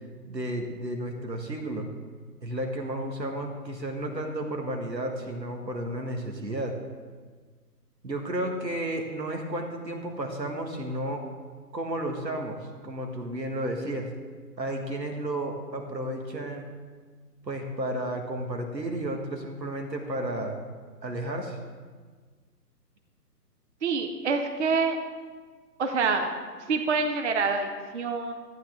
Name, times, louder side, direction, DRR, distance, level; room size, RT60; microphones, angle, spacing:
voice 1, 0.2-1.9 2.4-6.7 8.0-11.2 11.7-14.1 14.6-16.7 17.5-20.6 21.0-21.6, right 1 dB, 90° right, 3 dB, 1.8 m, -32 dB
voice 2, 23.8-25.0 25.8-26.3 26.7-28.3, right 4 dB, 45° right, 5 dB, 0.8 m, -26 dB
13.0 x 8.8 x 3.7 m, 1.5 s
figure-of-eight pair, 145°, 49 cm